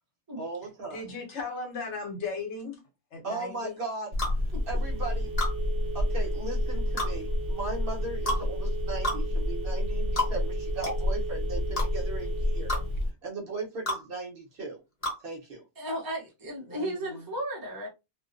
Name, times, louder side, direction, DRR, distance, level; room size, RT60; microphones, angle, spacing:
voice 1, 0.4-1.0 3.2-4.1 4.7-5.3 5.9-12.8 13.2-14.8 15.2-15.7, right 3 dB, 55° right, 0.9 m, -37 dB
voice 2, 0.9-2.8 3.1-3.8 7.0-7.1 16.7-17.3, left 4 dB, 70° left, 1.1 m, -37 dB
Telephone, 4.1-13.1, left 1 dB, 90° right, 1.1 m, -29 dB
sound 1, 4.2-4.4 5.4-5.5 7.0-7.1 8.3-8.4 9.0-9.2 10.2-10.3 10.8-11.0 11.8-11.9 12.7-12.8 13.9-14.0 15.0-15.2, left 1 dB, 35° left, 0.9 m, -29 dB
voice 3, 15.8-17.9, right 1 dB, 20° right, 0.6 m, -34 dB
2.4 x 2.2 x 2.5 m
omnidirectional pair, 1.2 m